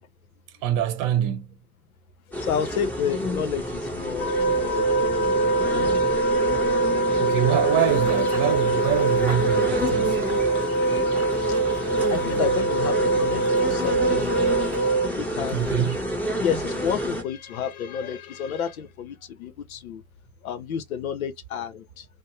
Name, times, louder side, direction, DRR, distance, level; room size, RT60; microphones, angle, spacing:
voice 1, 0.6-1.5 7.2-10.2 15.5-16.0, right 11 dB, 50° right, 0.8 m, -25 dB
sound 1, 2.3-17.2, equal, 5° left, 1.1 m, -29 dB
voice 2, 2.4-5.3 5.6-6.0 12.1-14.6 15.2-15.8 16.4-20.0 20.4-22.1, left 7 dB, 75° left, 0.6 m, -30 dB
sound 2, 4.2-15.1, right 3 dB, 40° left, 0.7 m, -23 dB
Run / Bird vocalization bird call bird song, 7.4-14.9, right 2 dB, 15° right, 1.3 m, -44 dB
2.6 x 2.0 x 3.2 m
figure-of-eight pair, 65°, 42 cm